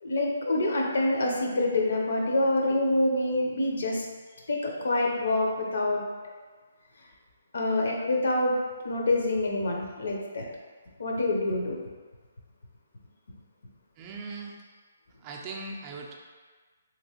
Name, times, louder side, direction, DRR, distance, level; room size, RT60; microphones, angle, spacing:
voice 1, 0.0-4.1 4.5-6.0 7.5-8.5 8.8-10.5 11.0-11.8, left 2 dB, 75° left, 0 dB, 0.6 m, -26 dB
voice 2, 14.0-14.5 15.2-16.1, right 3 dB, 30° right, -1 dB, 0.4 m, -39 dB
2.9 x 2.9 x 2.9 m, 1.4 s
hypercardioid pair, 150°, 0 cm